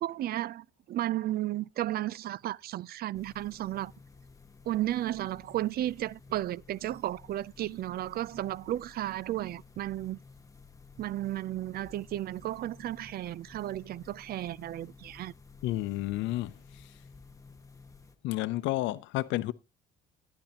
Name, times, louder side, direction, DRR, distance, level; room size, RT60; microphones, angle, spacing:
voice 1, 0.0-3.9 4.7-10.2 11.0-15.3, right 14 dB, 55° right, 0.4 m, -33 dB
sound 1, 3.1-18.2, left 4 dB, 15° left, 1.5 m, -54 dB
Bowed string instrument, 11.0-11.9, right 9 dB, 75° right, 4.8 m, -57 dB
voice 2, 15.6-16.5 18.2-19.5, left 16 dB, 85° left, 0.6 m, -30 dB
12.0 x 9.8 x 2.9 m
cardioid pair, 100°, 19 cm